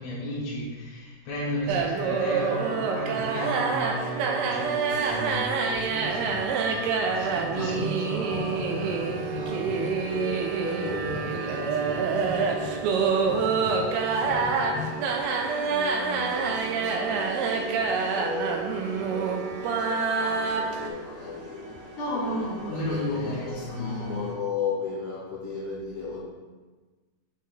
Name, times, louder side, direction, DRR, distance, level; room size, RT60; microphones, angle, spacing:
voice 1, 0.0-8.2 22.0-24.2, equal, 70° left, -6 dB, 2.0 m, -33 dB
sound 1, 1.7-20.9, right 5 dB, 85° right, 2.6 m, -27 dB
sound 2, 4.9-24.3, right 1 dB, 50° right, 1.8 m, -46 dB
sound 3, 6.7-7.6 8.3-10.5 10.7-15.0 21.2-21.3 21.7-21.9 22.2-22.3 22.8-23.0 23.3-24.3, left 6 dB, 85° left, 2.5 m, -40 dB
voice 2, 7.5-15.0 15.3-21.8 22.1-26.2, left 4 dB, 45° left, -10 dB, 2.7 m, -37 dB
6.2 x 4.1 x 4.0 m, 1.3 s
omnidirectional pair, 4.6 m